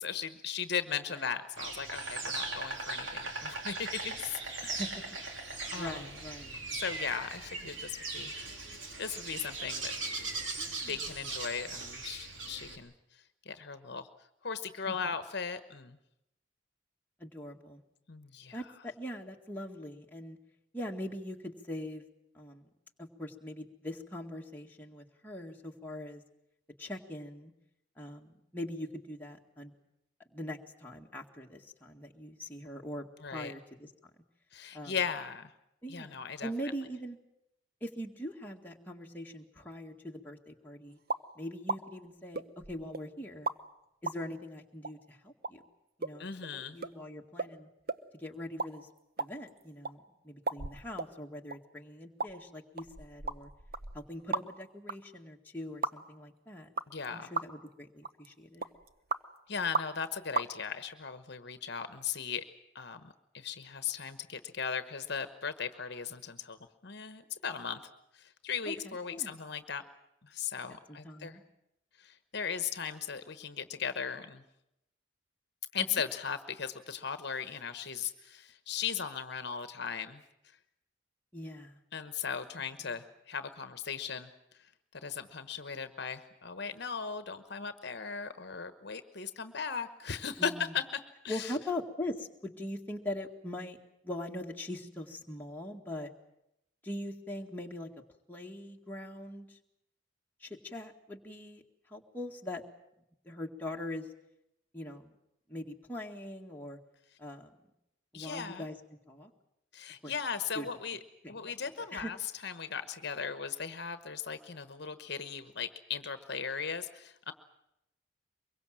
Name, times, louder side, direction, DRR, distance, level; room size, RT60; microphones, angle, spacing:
voice 1, 0.0-4.8 5.7-6.1 6.7-10.0 10.9-14.1 14.4-16.0 18.1-18.6 33.2-33.5 34.5-35.5 35.9-36.5 46.2-46.8 56.9-57.3 59.5-62.4 62.7-67.8 68.1-69.8 70.2-71.4 72.0-74.4 75.7-80.2 81.9-84.3 84.6-84.7 85.0-90.8 91.2-91.6 108.1-108.7 109.7-111.0 111.3-112.2 112.4-117.3, left 6 dB, 55° left, 10 dB, 1.1 m, -37 dB
Insect, 1.6-12.8, right 3 dB, 65° right, 3.5 m, -39 dB
voice 2, 4.6-5.0 5.7-6.6 10.6-11.0 14.9-15.1 17.2-17.8 18.5-20.4 20.7-22.0 22.3-22.7 23.0-26.2 26.8-27.5 28.0-29.7 30.3-33.9 34.7-35.0 35.8-37.2 37.8-41.0 41.4-42.4 42.7-43.5 44.0-45.6 46.0-47.7 48.1-48.9 49.2-53.5 53.9-56.7 57.1-58.7 68.7-69.4 70.9-71.4 75.8-75.9 81.3-81.8 90.4-90.7 91.3-93.8 94.0-96.1 96.8-97.9 98.3-99.6 100.4-101.6 101.9-102.6 103.3-104.1 104.7-105.1 105.5-106.8 107.2-107.5 108.1-108.8 109.1-109.3 110.0-110.1 110.5-110.7 111.2-111.3 111.9-112.1, left 1 dB, 10° left, 0 dB, 1.9 m, -42 dB
sound 1, 41.1-41.3 41.7-41.8 42.3-43.0 43.5-43.6 44.1-44.2 44.8-44.9 45.4-45.5 46.0-46.2 46.4-46.5 46.8-46.9 47.4-47.5 47.9-48.0 48.4-48.7 49.0-49.9 50.5-51.1 51.5-51.6 52.2-52.3 52.8-54.6 54.9-55.0 55.8-55.9 56.8-57.1 57.4-57.7 58.0-58.3 58.6-59.2 59.7-60.1 60.3-60.5, right 4 dB, 50° right, 0.9 m, -35 dB
24.0 x 22.5 x 7.6 m, 0.83 s
head